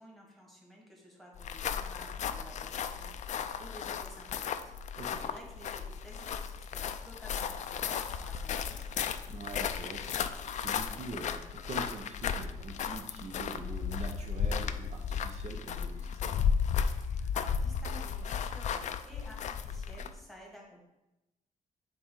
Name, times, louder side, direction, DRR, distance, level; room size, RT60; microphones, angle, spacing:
voice 1, 0.0-9.2 17.0-20.8, equal, ahead, -1 dB, 1.5 m, -53 dB
sound 1, 1.3-20.2, left 7 dB, 55° left, 0.4 m, -34 dB
voice 2, 9.3-16.4, right 3 dB, 50° right, 2 dB, 0.7 m, -44 dB
6.8 x 4.4 x 3.8 m, 0.96 s
wide cardioid pair, 145°, 14 cm